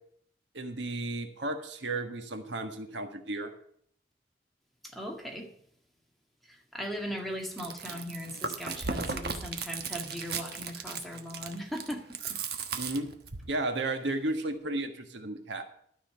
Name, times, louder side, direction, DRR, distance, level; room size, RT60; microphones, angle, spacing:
voice 1, 0.5-3.5 12.7-13.1 13.5-15.6, right 2 dB, 80° right, 6 dB, 1.5 m, -33 dB
voice 2, 4.9-5.5 6.7-12.0, equal, ahead, 0 dB, 2.0 m, -38 dB
Chewing mastication, 7.4-13.5, right 5 dB, 60° right, 1.2 m, -36 dB
12.5 x 5.7 x 6.9 m, 0.65 s
head